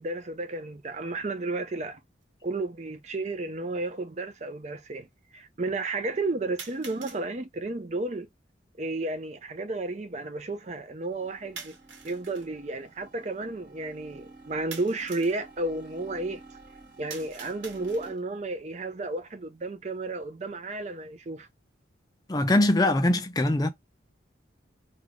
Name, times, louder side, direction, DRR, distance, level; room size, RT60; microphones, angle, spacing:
voice 1, 0.0-2.0 2.4-5.1 5.3-8.3 8.8-11.7 12.0-16.4 17.0-21.5, right 2 dB, 35° right, 0.5 m, -32 dB
sound 1, 2.2-2.3 3.3-3.4 6.6-7.2 11.6-12.5 14.7-15.4 17.1-18.3, right 5 dB, 90° right, 1.0 m, -44 dB
sound 2, 11.1-18.1, right 2 dB, 55° right, 2.2 m, -51 dB
voice 2, 22.3-23.7, left 1 dB, 20° left, 0.4 m, -22 dB
3.7 x 2.3 x 3.3 m
head